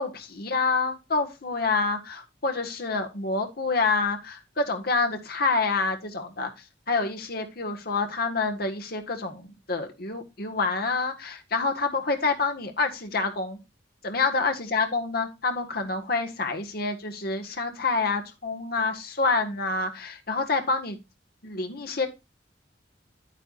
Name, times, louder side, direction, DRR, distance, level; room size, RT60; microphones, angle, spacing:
voice 1, 0.0-6.5 6.9-13.6 14.0-21.0 21.4-22.1, left 3 dB, 55° left, 4 dB, 1.6 m, -27 dB
9.9 x 9.1 x 2.5 m, 0.26 s
head